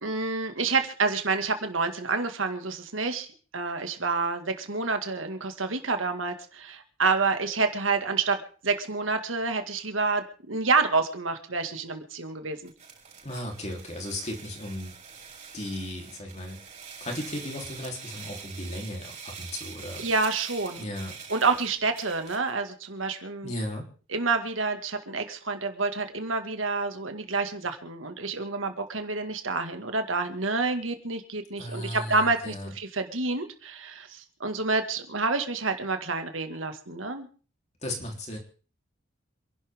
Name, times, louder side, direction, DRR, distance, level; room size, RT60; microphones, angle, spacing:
voice 1, 0.0-3.3 3.5-12.7 20.0-20.8 21.3-23.5 24.1-37.3, right 4 dB, 90° right, 7 dB, 2.1 m, -28 dB
sound 1, 12.7-22.5, right 6 dB, 40° right, 6.3 m, -44 dB
voice 2, 13.2-14.9 15.5-16.6 17.0-20.1 20.8-21.2 23.4-23.9 31.6-32.7 37.8-38.4, left 1 dB, 35° left, 1 dB, 3.7 m, -35 dB
27.5 x 11.5 x 3.7 m, 0.39 s
head